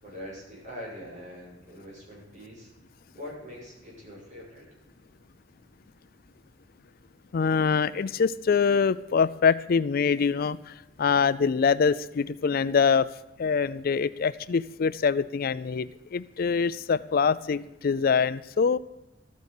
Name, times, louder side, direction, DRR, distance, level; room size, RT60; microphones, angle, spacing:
voice 1, 0.0-2.7 3.1-4.7, left 1 dB, 40° right, -3 dB, 6.7 m, -43 dB
voice 2, 7.3-13.1 13.4-18.8, left 5 dB, 50° left, 16 dB, 0.4 m, -24 dB
13.5 x 9.5 x 6.6 m, 0.94 s
head